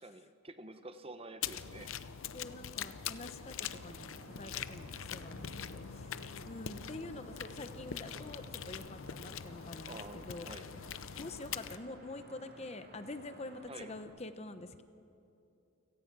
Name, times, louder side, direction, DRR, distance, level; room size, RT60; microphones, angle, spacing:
voice 1, 0.0-1.9 9.9-10.7 13.7-13.9, right 2 dB, 25° right, 9 dB, 0.8 m, -48 dB
sound 1, 1.4-11.8, left 8 dB, 70° left, 0.7 m, -43 dB
voice 2, 2.3-10.5 11.2-14.8, left 2 dB, 30° left, 10 dB, 0.8 m, -47 dB
sound 2, 3.4-14.0, right 1 dB, 45° right, 3.2 m, -56 dB
29.5 x 17.5 x 6.1 m, 2.8 s
head